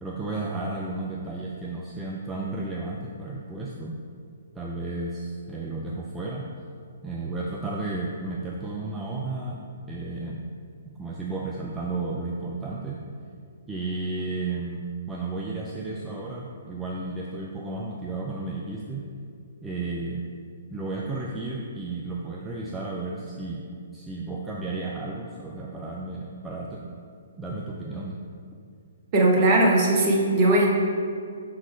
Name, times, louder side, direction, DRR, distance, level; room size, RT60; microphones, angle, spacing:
voice 1, 0.0-4.0 4.5-6.5 7.0-9.6 9.9-10.4 11.0-13.0 13.7-19.1 19.6-20.2 20.7-23.6 23.9-26.9 27.4-28.2, right 3 dB, 10° right, -3 dB, 0.5 m, -33 dB
voice 2, 29.1-30.7, right 1 dB, 35° right, -2 dB, 1.1 m, -19 dB
5.9 x 3.9 x 4.4 m, 2.2 s
figure-of-eight pair, 125°, 0 cm